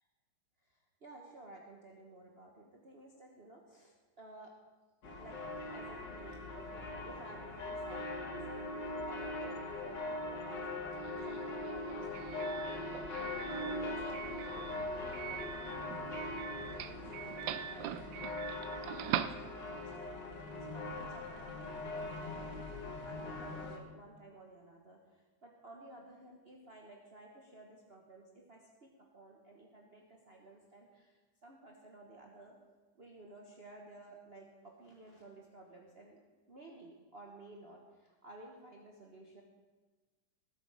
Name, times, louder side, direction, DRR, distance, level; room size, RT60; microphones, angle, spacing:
voice 1, 0.6-4.5 5.2-5.4 5.7-11.0 11.3-22.5 23.0-32.6 32.9-36.2 36.5-39.4, right 2 dB, 35° right, -1 dB, 1.3 m, -55 dB
sound 1, 5.0-23.8, left 2 dB, 65° left, 2.0 m, -41 dB
Doorbell, 10.9-20.0, right 10 dB, 75° right, 1.3 m, -43 dB
19.5 x 8.7 x 4.9 m, 1.3 s
omnidirectional pair, 2.2 m